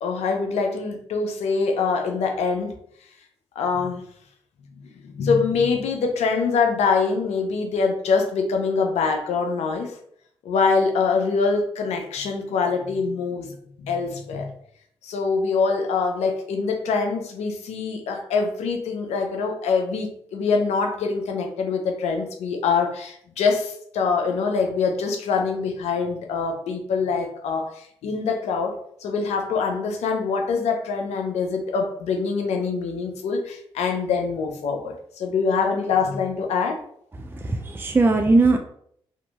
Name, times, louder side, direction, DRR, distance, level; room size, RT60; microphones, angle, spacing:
voice 1, 0.0-2.7 3.6-4.0 5.0-10.0 10.4-14.5 15.0-36.8, left 5 dB, 80° left, 4 dB, 0.5 m, -24 dB
voice 2, 37.2-38.6, right 3 dB, 20° right, 4 dB, 0.3 m, -19 dB
2.8 x 2.5 x 2.4 m, 0.66 s
supercardioid pair, 45°, 11 cm